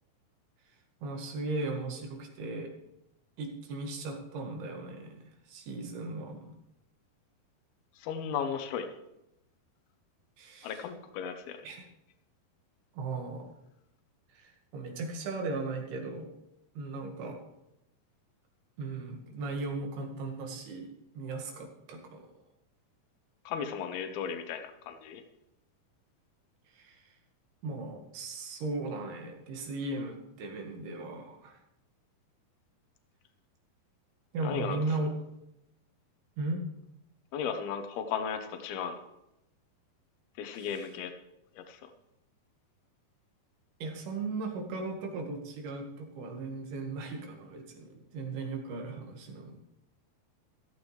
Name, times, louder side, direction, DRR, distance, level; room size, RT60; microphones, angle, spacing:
voice 1, 1.0-2.7 3.4-6.6 10.4-10.8 11.6-11.9 12.9-13.5 14.3-16.3 16.8-17.4 18.8-22.3 26.7-27.1 27.6-31.6 34.3-35.1 36.4-36.7 40.5-40.9 43.8-49.6, right 3 dB, 85° right, 2 dB, 3.8 m, -37 dB
voice 2, 8.0-8.9 10.6-11.6 23.5-25.2 34.4-34.8 37.3-39.0 40.4-41.1 41.6-41.8, left 7 dB, 80° left, 7 dB, 2.9 m, -35 dB
15.0 x 13.5 x 3.3 m, 0.85 s
omnidirectional pair, 4.4 m